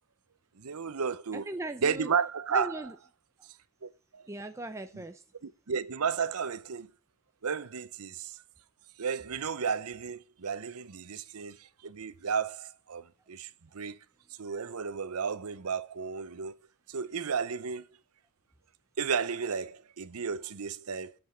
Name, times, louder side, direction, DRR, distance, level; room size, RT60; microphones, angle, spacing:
voice 1, 0.6-1.5 1.8-2.8 3.8-4.3 5.4-6.9 7.4-8.4 9.0-14.0 14.4-16.5 16.9-17.9 19.0-21.1, right 6 dB, 80° right, 0.7 m, -33 dB
voice 2, 1.3-2.1 2.5-2.9 4.3-5.2, right 1 dB, 15° right, 0.6 m, -38 dB
8.1 x 8.1 x 7.2 m
head